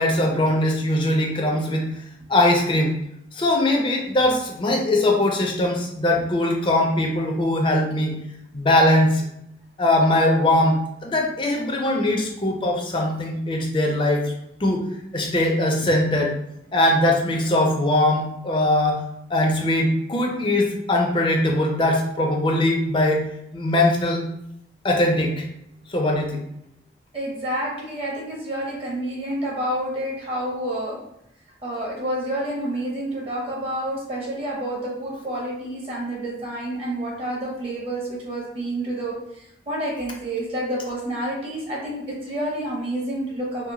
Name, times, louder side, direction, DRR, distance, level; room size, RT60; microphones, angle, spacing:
voice 1, 0.0-2.0 2.3-3.0 3.3-8.2 8.5-9.2 9.8-14.2 14.6-14.9 15.1-16.3 16.7-19.0 19.3-23.3 23.5-24.2 24.8-25.4 25.9-26.4, left 1 dB, 30° left, 1 dB, 0.4 m, -21 dB
voice 2, 27.1-31.0 31.6-43.7, right 1 dB, 30° right, -3 dB, 0.6 m, -29 dB
2.7 x 2.1 x 2.7 m, 0.78 s
head